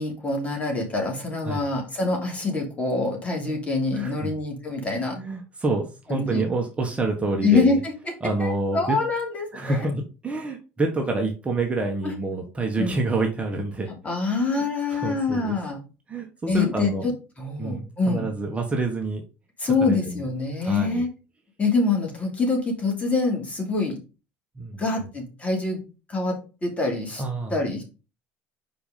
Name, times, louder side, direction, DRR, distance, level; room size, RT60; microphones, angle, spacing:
voice 1, 0.0-5.2 6.1-6.4 7.4-7.9 8.4-9.9 12.0-12.1 12.8-13.0 14.0-15.8 16.5-17.1 17.4-18.3 19.6-21.1 21.6-23.9 24.8-25.8 26.1-26.4 26.6-27.2 27.5-27.8, left 3 dB, 20° left, 1 dB, 3.0 m, -25 dB
voice 2, 3.9-4.3 5.2-7.8 8.2-9.0 9.5-13.9 14.5-14.6 14.9-15.6 16.1-17.0 17.6-19.2 19.8-20.2 20.6-21.0 24.6-24.8 27.2-27.6, right 2 dB, 20° right, 2 dB, 1.4 m, -27 dB
5.2 x 4.7 x 5.1 m, 0.32 s
supercardioid pair, 95°, 6 cm